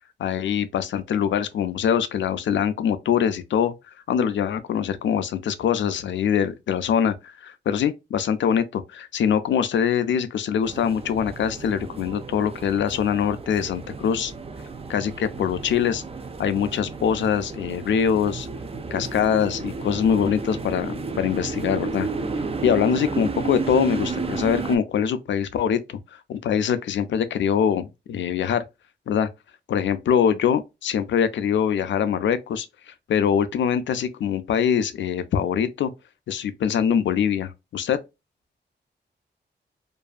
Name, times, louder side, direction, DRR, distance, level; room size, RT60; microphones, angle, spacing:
voice 1, 0.2-3.7 4.1-14.3 14.9-16.0 16.4-18.5 18.9-22.1 22.6-28.6 29.1-29.3 29.7-35.9 36.3-38.0, left 8 dB, 85° left, 0.4 m, -23 dB
sound 1, 10.6-24.8, right 4 dB, 30° right, 0.4 m, -32 dB
2.6 x 2.3 x 2.3 m
cardioid pair, 70°, 19 cm